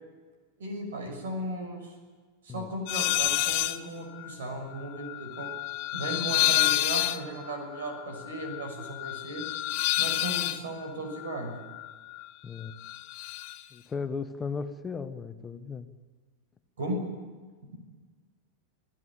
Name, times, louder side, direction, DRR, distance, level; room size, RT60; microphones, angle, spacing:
voice 1, 0.6-1.9 2.4-5.5 5.9-9.4 10.0-11.5 16.8-17.0, right 1 dB, 70° right, 5 dB, 6.2 m, -36 dB
sound 1, 2.9-3.8 4.1-12.3 12.6-13.6, left 18 dB, 50° left, 1.0 m, -30 dB
voice 2, 12.4-12.7 13.7-15.9, left 5 dB, 20° left, 10 dB, 1.5 m, -36 dB
27.0 x 17.0 x 8.7 m, 1.5 s
figure-of-eight pair, 95°, 0 cm